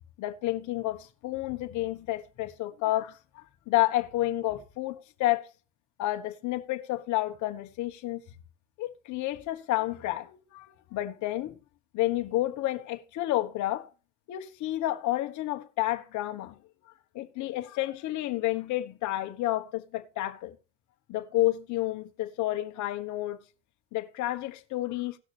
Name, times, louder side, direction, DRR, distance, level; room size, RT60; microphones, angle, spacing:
voice 1, 0.2-5.5 6.0-8.2 8.8-11.6 11.9-13.9 14.3-16.6 17.1-20.6 21.1-23.4 23.9-25.2, left 16 dB, 60° left, 1.3 m, -30 dB
17.5 x 6.4 x 3.3 m
supercardioid pair, 85°, 34 cm